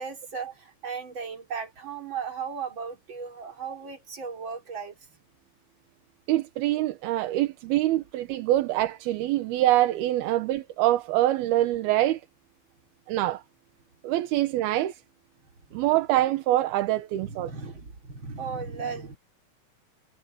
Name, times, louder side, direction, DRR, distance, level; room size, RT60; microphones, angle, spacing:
voice 1, 0.0-5.0 15.8-15.9 17.1-19.2, right 5 dB, 30° right, 4.0 m, -36 dB
voice 2, 6.3-12.2 13.1-13.4 14.0-15.0 15.7-17.5, right 15 dB, 80° right, 2.9 m, -25 dB
omnidirectional pair, 4.6 m